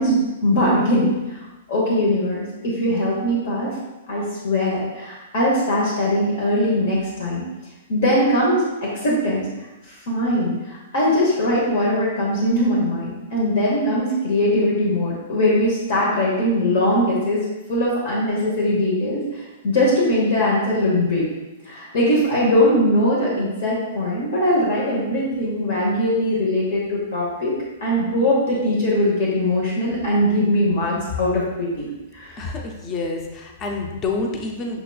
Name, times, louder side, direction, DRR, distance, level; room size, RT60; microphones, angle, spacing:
voice 1, 0.0-1.4 1.7-3.7 4.1-7.4 7.9-9.4 10.1-17.4 17.7-21.2 21.6-27.5 27.8-31.8 32.1-32.4, left 1 dB, 60° left, -5 dB, 1.0 m, -21 dB
voice 2, 32.4-34.8, left 3 dB, 25° left, 1 dB, 0.5 m, -28 dB
5.6 x 2.9 x 2.3 m, 1.1 s
hypercardioid pair, 150°, 0 cm